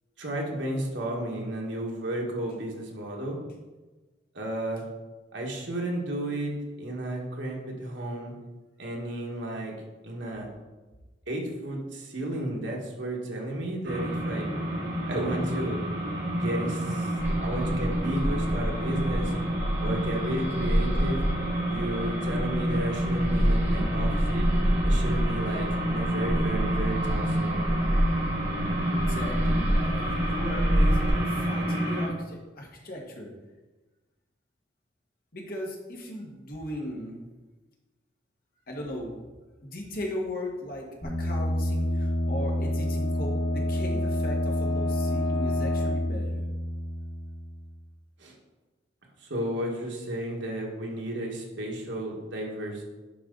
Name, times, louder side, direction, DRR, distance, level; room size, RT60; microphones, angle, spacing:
voice 1, 0.2-3.4 4.3-4.8 5.3-8.3 8.8-9.7 10.0-10.5 11.3-14.5 15.1-15.8 16.4-17.1 17.4-19.3 19.8-21.2 21.7-24.5 24.8-27.7 48.2-48.3 49.2-52.8, right 1 dB, 85° right, -1 dB, 1.7 m, -33 dB
sound 1, 13.8-32.1, right 1 dB, 60° right, 2.7 m, -29 dB
sound 2, 17.2-31.1, equal, 10° right, 2.3 m, -28 dB
voice 2, 28.9-33.3 35.3-37.3 38.7-39.2 39.6-46.5, left 1 dB, 55° left, -1 dB, 1.7 m, -37 dB
sound 3, 41.0-47.6, left 1 dB, 30° left, 2.8 m, -28 dB
11.0 x 4.6 x 4.0 m, 1.2 s
head